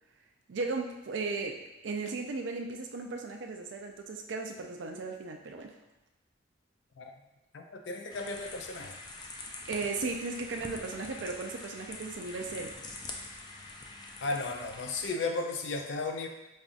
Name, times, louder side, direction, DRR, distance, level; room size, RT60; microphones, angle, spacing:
voice 1, 0.5-5.7 9.7-12.8, right 3 dB, 85° right, 4 dB, 0.4 m, -36 dB
voice 2, 7.5-9.0 14.2-16.3, left 3 dB, 85° left, 3 dB, 0.4 m, -34 dB
sound 1, 8.1-15.1, left 3 dB, 25° left, 0.4 m, -45 dB
5.3 x 2.4 x 2.5 m, 0.98 s
head